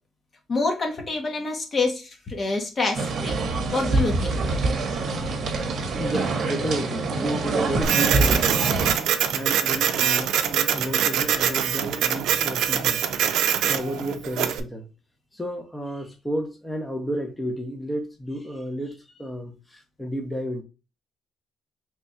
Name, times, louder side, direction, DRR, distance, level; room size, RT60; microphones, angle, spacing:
voice 1, 0.5-3.4 3.7-4.3, left 3 dB, 40° left, 1.0 m, -26 dB
sound 1, 2.9-9.0, right 3 dB, 55° right, 0.8 m, -25 dB
voice 2, 5.9-13.3 13.6-14.9 15.3-20.6, equal, 10° left, 0.7 m, -32 dB
Printer, 7.8-14.6, right 9 dB, 85° right, 0.4 m, -24 dB
3.3 x 2.3 x 4.1 m
cardioid pair, 90°, 0 cm